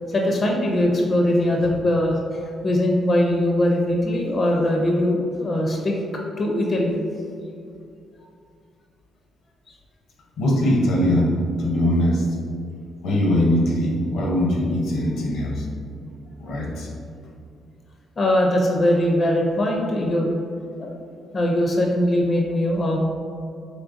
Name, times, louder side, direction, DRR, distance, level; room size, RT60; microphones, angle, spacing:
voice 1, 0.1-5.9 6.4-7.0 18.2-20.4 20.8-20.9 21.3-23.0, left 1 dB, 40° left, 0 dB, 0.5 m, -21 dB
voice 2, 10.4-12.3 13.0-15.7 16.4-16.9, equal, 80° left, -1 dB, 0.6 m, -21 dB
3.8 x 3.1 x 2.5 m, 2.4 s
cardioid pair, 90°, 0 cm